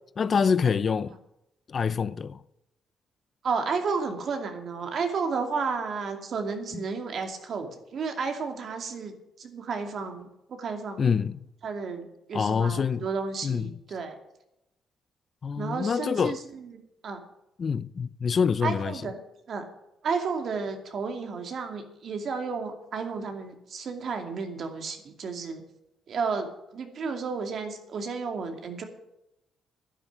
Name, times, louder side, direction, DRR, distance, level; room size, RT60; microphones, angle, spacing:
voice 1, 0.2-1.2 1.7-2.4 6.7-6.8 11.0-11.4 12.3-13.1 13.4-13.7 15.4-16.4 17.6-19.0, left 6 dB, 45° left, 0.5 m, -26 dB
voice 2, 3.4-11.1 11.6-14.2 15.6-17.2 18.6-19.2 19.5-19.7 20.0-25.6 26.1-26.5 26.7-28.8, right 5 dB, 60° right, 2.5 m, -32 dB
11.5 x 10.0 x 7.3 m
cardioid pair, 90°, 0 cm